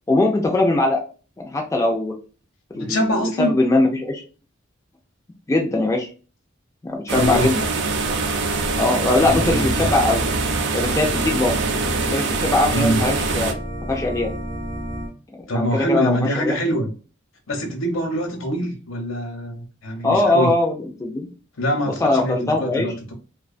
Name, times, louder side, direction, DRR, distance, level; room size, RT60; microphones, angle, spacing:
voice 1, 0.1-1.0 1.4-2.1 2.7-4.2 5.5-6.1 6.8-7.6 8.7-10.2 10.7-11.5 12.1-13.6 13.9-14.3 15.5-16.6 20.0-21.3 22.0-22.9, left 2 dB, 15° left, 1 dB, 0.3 m, -21 dB
voice 2, 2.7-3.5 7.1-7.5 9.2-9.9 12.7-13.0 15.5-16.9 17.5-20.5 21.6-22.3 22.6-23.1, equal, 70° left, 4 dB, 0.7 m, -24 dB
sound 1, 7.1-13.5, right 3 dB, 60° right, 0.4 m, -24 dB
Organ, 9.3-15.1, right 1 dB, 45° right, 0.8 m, -30 dB
2.4 x 2.2 x 2.4 m, 0.37 s
head